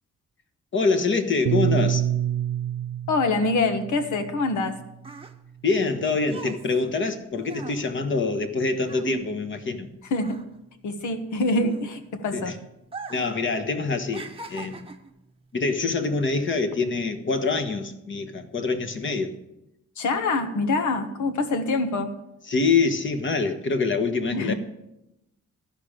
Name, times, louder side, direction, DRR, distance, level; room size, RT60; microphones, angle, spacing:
voice 1, 0.7-2.0 5.6-9.9 12.3-12.5 13.1-14.9 15.5-19.4 22.5-24.5, left 4 dB, 40° left, 8 dB, 1.2 m, -25 dB
Piano, 1.5-5.9, right 10 dB, 65° right, 0.4 m, -28 dB
voice 2, 3.1-4.8 10.1-10.4 10.8-12.5 20.0-22.1 24.3-24.5, left 3 dB, 85° left, 8 dB, 1.4 m, -25 dB
sound 1, 4.5-9.9 10.1-12.3 12.8-13.4 13.7-15.2 15.9-16.1, right 4 dB, 20° right, 0.9 m, -41 dB
13.0 x 5.2 x 8.8 m, 0.87 s
cardioid pair, 125°, 29 cm